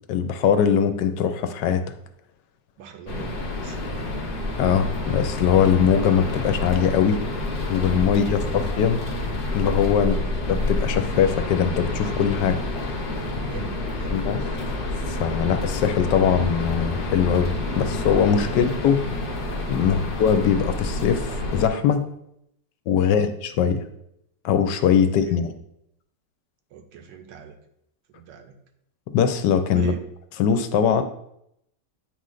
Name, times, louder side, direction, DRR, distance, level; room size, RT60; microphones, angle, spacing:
voice 1, 0.1-1.8 4.6-7.2 7.7-9.0 9.5-10.2 10.5-12.6 14.1-14.4 15.1-19.1 19.7-22.1 22.9-23.8 24.4-25.5 29.1-29.9 30.4-31.0, left 7 dB, 75° left, 9 dB, 1.2 m, -21 dB
voice 2, 2.8-4.1 8.0-8.6 9.9-10.3 13.4-14.3 18.5-18.6 19.8-20.1 23.0-23.3 25.0-25.4 26.7-27.6 28.1-28.6 29.7-30.1, right 8 dB, 80° right, 6 dB, 1.4 m, -42 dB
sound 1, 3.1-21.7, left 2 dB, 55° left, 0.6 m, -28 dB
8.8 x 3.2 x 3.8 m, 0.77 s
omnidirectional pair, 2.0 m